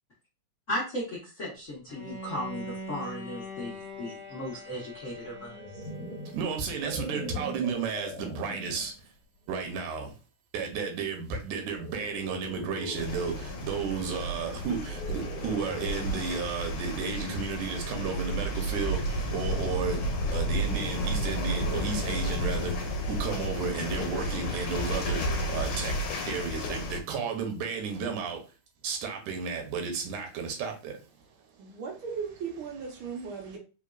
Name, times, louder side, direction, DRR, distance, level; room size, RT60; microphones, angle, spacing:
voice 1, 0.7-5.6, left 1 dB, 85° left, 0.6 m, -36 dB
Bowed string instrument, 1.9-6.9, equal, ahead, 1.7 m, -43 dB
sound 1, 5.3-8.9 9.6-9.8 11.6-13.1 14.8-16.3, left 1 dB, 20° left, 1.2 m, -41 dB
voice 2, 6.3-8.9 9.5-10.2 10.5-20.0 20.3-25.9 26.3-28.4 28.8-31.0 33.4-33.5, right 5 dB, 90° right, 2.5 m, -33 dB
sound 2, 12.9-27.0, equal, 65° left, 1.4 m, -32 dB
voice 3, 31.6-33.6, right 6 dB, 70° right, 1.2 m, -37 dB
4.9 x 3.6 x 2.4 m
omnidirectional pair, 3.5 m